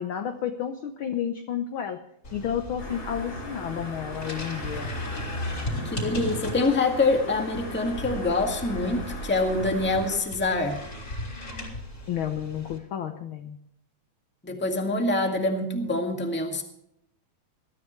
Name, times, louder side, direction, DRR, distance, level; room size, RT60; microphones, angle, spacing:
voice 1, 0.0-2.0 2.3-4.9 12.1-13.6, left 9 dB, 70° left, 7 dB, 1.2 m, -31 dB
sound 1, 2.2-12.8, left 1 dB, 30° left, 3.5 m, -36 dB
sound 2, 2.8-10.2, left 1 dB, 85° left, 8.4 m, -40 dB
voice 2, 5.8-10.8 14.4-16.6, left 2 dB, 5° left, 3 dB, 1.3 m, -25 dB
21.5 x 13.0 x 3.2 m, 0.74 s
omnidirectional pair, 3.4 m